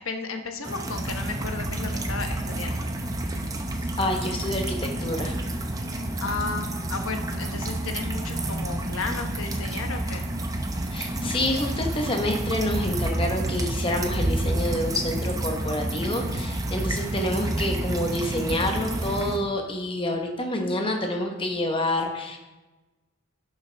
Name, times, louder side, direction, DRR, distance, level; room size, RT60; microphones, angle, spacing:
voice 1, 0.0-3.0 6.2-10.3, left 4 dB, 70° left, 5 dB, 1.0 m, -34 dB
sound 1, 0.6-19.4, right 1 dB, 15° right, 0.6 m, -29 dB
voice 2, 4.0-5.3 10.9-22.4, left 1 dB, 25° left, 3 dB, 1.0 m, -28 dB
11.5 x 7.1 x 3.4 m, 1.1 s
head